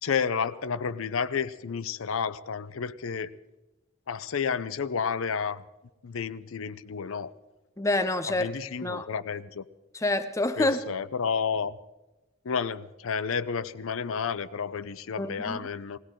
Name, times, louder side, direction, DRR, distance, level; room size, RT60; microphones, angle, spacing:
voice 1, 0.0-3.3 4.1-5.6 6.0-7.3 8.3-9.6 10.6-11.8 12.4-16.0, left 6 dB, 75° left, 0.5 m, -31 dB
voice 2, 7.8-8.5 8.8-9.1 9.9-10.8 15.2-15.6, left 2 dB, 15° left, 0.6 m, -27 dB
20.5 x 16.5 x 3.8 m
head